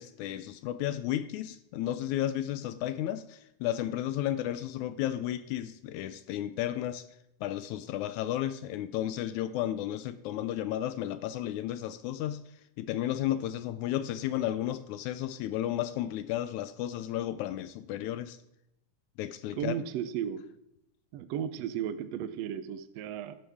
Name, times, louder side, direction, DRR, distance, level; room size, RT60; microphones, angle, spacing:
voice 1, 0.0-7.1 7.4-12.4 12.8-18.4 19.2-19.7, left 12 dB, 80° left, 1.7 m, -33 dB
voice 2, 19.6-20.4 21.1-23.4, right 9 dB, 80° right, 1.5 m, -34 dB
12.5 x 10.5 x 3.5 m
omnidirectional pair, 3.8 m